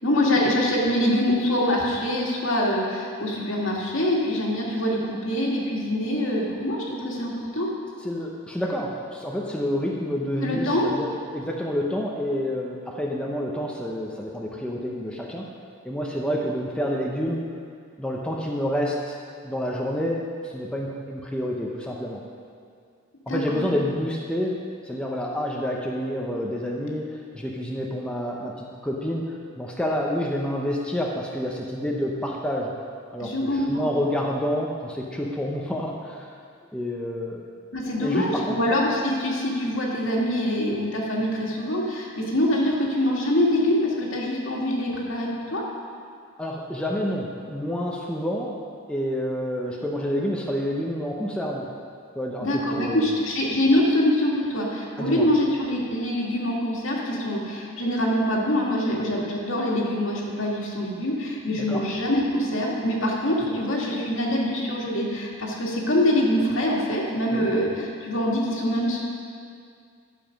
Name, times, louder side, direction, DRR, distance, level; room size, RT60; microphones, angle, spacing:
voice 1, 0.0-7.7 10.4-10.9 23.3-23.7 33.2-33.8 37.7-45.6 52.4-69.0, left 1 dB, 70° left, -3 dB, 2.0 m, -24 dB
voice 2, 8.0-15.5 15.8-17.5 18.0-19.2 19.4-22.2 23.3-32.7 33.1-36.3 36.7-37.4 38.0-38.6 46.4-48.6 48.9-51.7 52.1-53.1 55.0-55.3 61.5-61.8 67.3-67.5, equal, 5° left, -2 dB, 0.7 m, -28 dB
12.0 x 7.0 x 5.2 m, 2.2 s
head